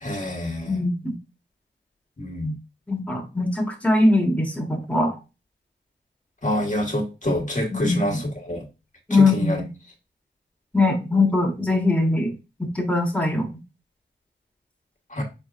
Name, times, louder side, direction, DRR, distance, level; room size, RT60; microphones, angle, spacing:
voice 1, 0.0-0.8 2.2-2.5 6.4-8.6 9.1-9.6 15.1-15.2, left 1 dB, 40° left, 1 dB, 1.5 m, -26 dB
voice 2, 0.7-1.1 2.9-5.1 7.7-8.2 9.1-9.7 10.7-12.3 12.6-13.5, left 2 dB, 5° left, 0 dB, 1.4 m, -21 dB
4.5 x 4.4 x 2.5 m, 0.29 s
cardioid pair, 45°, 19 cm